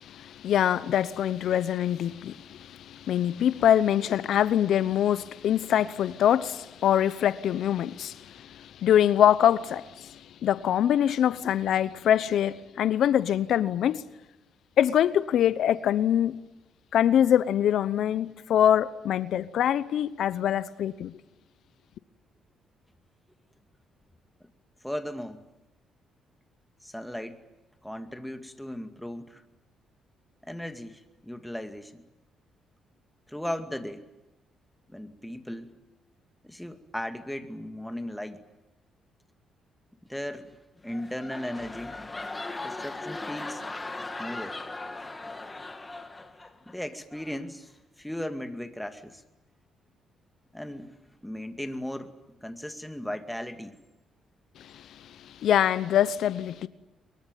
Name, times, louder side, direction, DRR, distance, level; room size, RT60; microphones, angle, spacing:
voice 1, 0.0-14.0 14.8-16.4 16.9-21.1 54.6-54.9 55.4-56.7, left 10 dB, 70° left, 0.8 m, -24 dB
voice 2, 24.8-25.4 26.8-27.4 27.8-29.4 30.5-32.0 33.3-34.0 34.9-35.7 36.4-38.4 40.1-40.5 40.8-42.0 42.6-43.6 44.2-44.6 46.7-47.7 48.0-49.2 50.5-51.0 51.2-52.1 52.4-53.7, left 1 dB, 5° left, 2.3 m, -36 dB
sound 1, 40.8-46.7 47.1-47.4, left 2 dB, 20° left, 2.5 m, -38 dB
23.5 x 22.5 x 9.1 m
cardioid pair, 90°, 0 cm